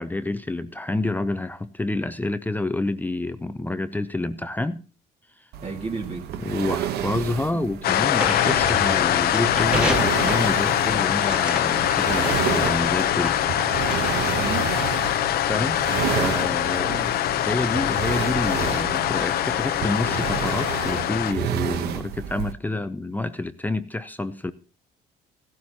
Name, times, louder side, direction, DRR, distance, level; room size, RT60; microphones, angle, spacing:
voice 1, 0.0-4.8 6.4-13.4 15.5-15.8 16.2-16.9 17.4-24.5, left 2 dB, 10° left, 12 dB, 0.6 m, -28 dB
sound 1, 5.5-22.5, right 9 dB, 75° right, 0.9 m, -31 dB
voice 2, 5.6-6.2 7.5-7.7 14.4-14.7 15.0-15.1 16.8-17.1 22.7-22.8, right 4 dB, 40° right, -1 dB, 1.9 m, -33 dB
sound 2, 7.8-21.3, left 12 dB, 65° left, 0.7 m, -23 dB
sound 3, 8.2-14.5, right 1 dB, 5° right, 1.7 m, -33 dB
15.5 x 12.5 x 2.8 m, 0.36 s
cardioid pair, 110°, 17 cm